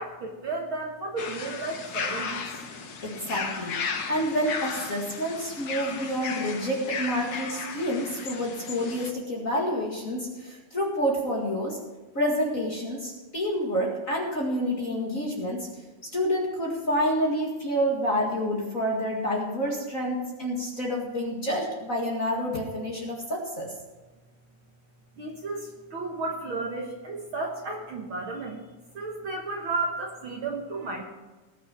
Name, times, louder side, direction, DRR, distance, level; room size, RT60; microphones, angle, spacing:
voice 1, 0.0-2.6 25.2-28.7 28.9-31.0, right 3 dB, 50° right, 0 dB, 1.8 m, -33 dB
sound 1, 1.2-9.1, left 5 dB, 70° left, 0.9 m, -35 dB
voice 2, 3.0-3.8 4.1-11.8 12.2-15.7 16.1-23.7, equal, 30° left, -2 dB, 2.0 m, -28 dB
19.5 x 6.5 x 5.9 m, 1.2 s
omnidirectional pair, 3.3 m